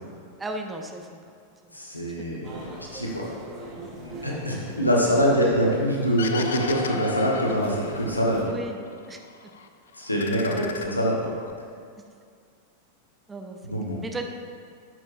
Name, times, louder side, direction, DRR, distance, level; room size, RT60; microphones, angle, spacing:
voice 1, 0.4-1.1 1.6-1.8 4.1-4.3 5.0-5.2 8.5-8.8 9.1-9.2 10.5-11.0 13.3-13.6 14.0-14.3, right 2 dB, 15° right, 3 dB, 0.6 m, -35 dB
voice 2, 1.7-3.3 3.7-8.5 10.0-11.3 13.6-14.0, equal, 85° left, -2 dB, 1.3 m, -25 dB
sound 1, 2.4-8.4, right 1 dB, 35° right, 1.7 m, -43 dB
sound 2, 6.2-8.5 8.9-9.7 10.0-11.5, left 5 dB, 65° left, 0.5 m, -35 dB
11.0 x 6.2 x 2.6 m, 2.2 s
figure-of-eight pair, 90°, 0 cm